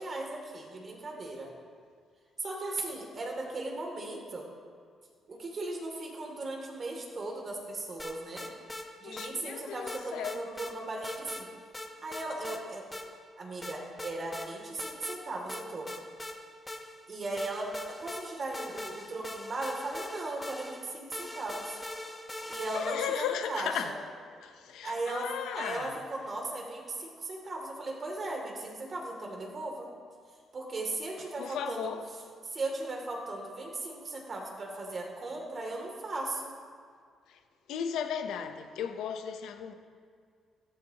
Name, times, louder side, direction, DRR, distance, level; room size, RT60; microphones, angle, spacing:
voice 1, 0.0-1.5 2.4-4.5 5.3-8.5 9.0-11.5 12.0-12.8 13.4-16.1 17.1-21.8 22.5-23.9 24.8-25.3 25.5-29.9 30.5-31.9 32.5-36.5, right 2 dB, 40° right, 2.7 m, -37 dB
sound 1, 8.0-8.9 9.2-9.3 9.9-10.7 11.0-11.4 11.7-12.6 12.9-13.1 13.6-14.5 14.8-15.2 15.5-17.0 17.4-23.1, left 1 dB, 15° left, 1.3 m, -42 dB
voice 2, 9.0-10.5 22.7-24.0 24.4-26.0 31.4-32.1 37.3-37.4 37.7-39.7, left 8 dB, 85° left, 0.9 m, -36 dB
14.5 x 13.5 x 3.0 m
cardioid pair, 90°, 0 cm